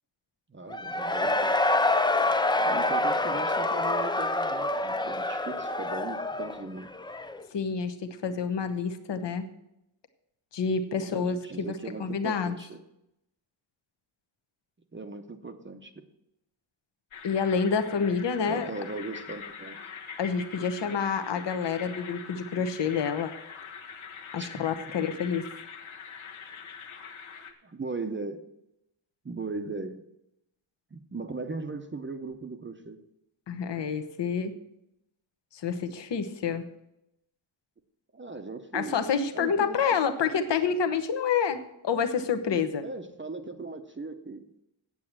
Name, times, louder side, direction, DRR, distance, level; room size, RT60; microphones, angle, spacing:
voice 1, 0.5-1.5 2.6-6.9 11.1-12.8 14.9-15.9 18.4-19.9 24.4-24.6 27.4-28.4 29.2-30.0 30.9-33.0 38.1-39.0 39.3-40.0 42.8-44.5, right 3 dB, 25° right, 7 dB, 0.7 m, -38 dB
Cheering / Crowd, 0.7-7.4, left 2 dB, 10° left, 0.3 m, -27 dB
voice 2, 7.5-9.5 10.5-11.4 11.7-12.6 17.2-18.7 20.2-23.3 24.3-25.4 33.5-34.5 35.5-36.6 38.7-42.8, left 6 dB, 60° left, 8 dB, 1.0 m, -28 dB
sound 1, 17.1-27.5, left 6 dB, 75° left, 1.4 m, -43 dB
8.7 x 8.0 x 7.3 m, 0.83 s
wide cardioid pair, 160°, 49 cm